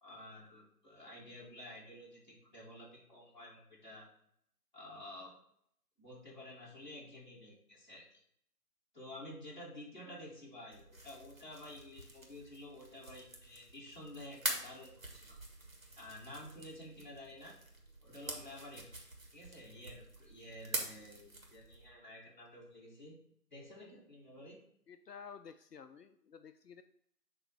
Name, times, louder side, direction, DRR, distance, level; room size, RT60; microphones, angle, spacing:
voice 1, 0.0-4.1 4.7-5.3 6.0-8.2 8.9-15.4 16.0-17.6 18.0-18.9 19.3-23.2 23.5-24.6, left 1 dB, 30° left, -6 dB, 1.8 m, -51 dB
sound 1, 10.7-21.9, right 1 dB, 55° right, 1.7 m, -46 dB
voice 2, 24.9-26.8, left 6 dB, 80° left, 9 dB, 0.6 m, -52 dB
7.0 x 3.2 x 6.0 m, 0.71 s
figure-of-eight pair, 170°, 48 cm